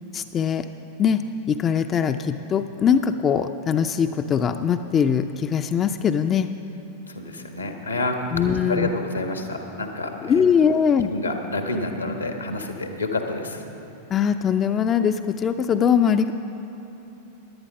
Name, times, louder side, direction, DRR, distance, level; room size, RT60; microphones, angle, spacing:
voice 1, 0.1-0.7 1.0-6.5 8.3-8.9 10.2-11.1 14.1-16.3, left 7 dB, 25° left, 9 dB, 0.4 m, -21 dB
voice 2, 7.1-10.7 11.0-13.6, left 2 dB, 80° left, 4 dB, 1.4 m, -29 dB
17.0 x 11.0 x 5.3 m, 2.9 s
figure-of-eight pair, 90°, 0 cm